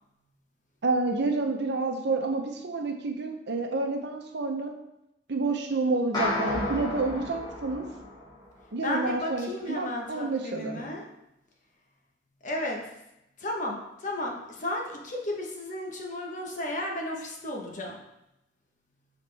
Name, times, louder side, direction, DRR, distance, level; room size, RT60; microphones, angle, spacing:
voice 1, 0.8-4.7 5.3-7.8 8.7-10.8, right 3 dB, 65° right, 4 dB, 0.8 m, -29 dB
sound 1, 6.1-8.6, left 1 dB, 25° left, 2.1 m, -32 dB
voice 2, 8.8-11.0 12.4-12.8 13.4-18.0, left 1 dB, 45° left, 0 dB, 1.1 m, -33 dB
6.8 x 4.1 x 3.4 m, 0.87 s
head